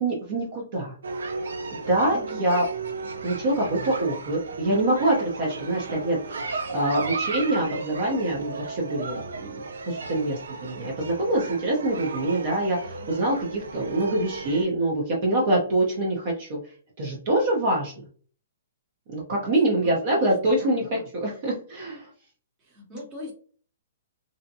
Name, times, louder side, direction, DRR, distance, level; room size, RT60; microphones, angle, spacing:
voice 1, 0.0-0.9 1.7-2.6 3.2-16.6 17.0-18.0 19.1-22.1, right 1 dB, 45° right, -3 dB, 0.7 m, -25 dB
sound 1, 1.0-14.6, right 4 dB, 85° right, 0.4 m, -34 dB
voice 2, 2.1-2.4 19.8-21.1 22.6-23.3, left 1 dB, 20° right, -1 dB, 0.9 m, -41 dB
2.6 x 2.1 x 2.6 m, 0.43 s
hypercardioid pair, 155°, 0 cm